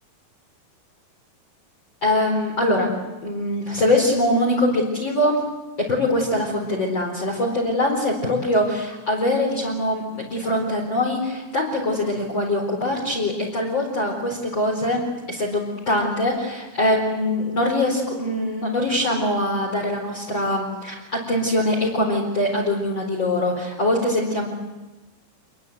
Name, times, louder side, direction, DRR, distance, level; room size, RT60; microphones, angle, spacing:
voice 1, 2.0-2.9 3.2-5.4 5.9-21.0 21.3-24.5, left 1 dB, 25° left, -3 dB, 4.5 m, -23 dB
27.0 x 22.0 x 8.1 m, 1.1 s
omnidirectional pair, 5.5 m